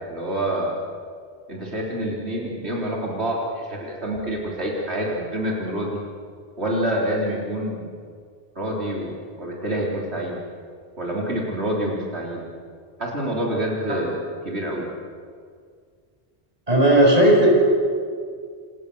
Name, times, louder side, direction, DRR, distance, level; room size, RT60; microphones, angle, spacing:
voice 1, 0.1-0.8 1.5-6.0 6.6-7.8 8.6-10.4 11.0-12.5 13.0-14.9, right 1 dB, 85° right, -2 dB, 4.2 m, -27 dB
voice 2, 16.7-17.5, right 1 dB, 35° right, -1 dB, 7.5 m, -15 dB
29.0 x 28.5 x 7.0 m, 2.1 s
omnidirectional pair, 1.1 m